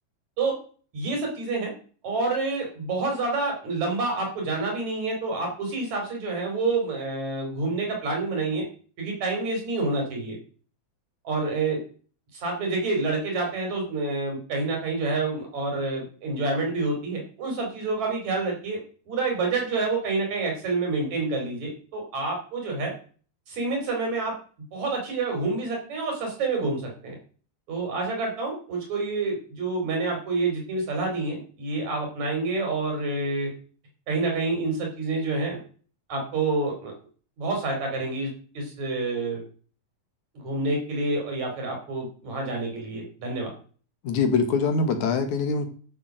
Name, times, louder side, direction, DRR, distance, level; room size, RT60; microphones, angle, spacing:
voice 1, 0.9-1.7 2.0-8.6 9.0-10.4 11.2-11.8 12.3-18.8 19.1-22.9 23.5-24.3 24.7-27.1 27.7-33.5 34.1-35.6 36.1-36.9 37.4-39.4 40.3-43.5, right 3 dB, 65° right, 1 dB, 5.8 m, -28 dB
voice 2, 44.0-45.7, left 4 dB, 75° left, 7 dB, 3.1 m, -23 dB
12.5 x 7.8 x 6.5 m, 0.42 s
omnidirectional pair, 3.4 m